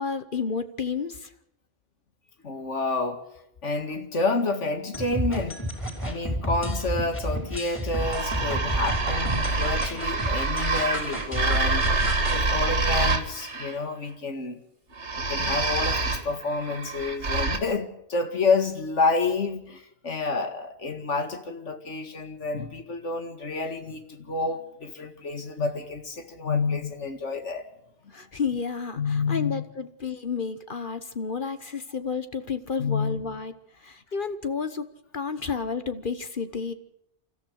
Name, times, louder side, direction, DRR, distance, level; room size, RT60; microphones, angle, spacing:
voice 1, 0.0-1.3 28.1-34.9 35.1-36.7, left 5 dB, 45° left, 1.3 m, -31 dB
voice 2, 2.4-3.2 3.6-11.9 12.3-14.6 15.2-27.7 28.0-28.1 29.0-29.6 32.8-33.4, left 3 dB, 85° left, 2.4 m, -29 dB
sound 1, 4.9-12.4, equal, 10° left, 5.1 m, -32 dB
sound 2, 7.9-13.7 14.9-17.6, right 3 dB, 75° right, 2.5 m, -26 dB
28.5 x 14.0 x 6.5 m
omnidirectional pair, 1.2 m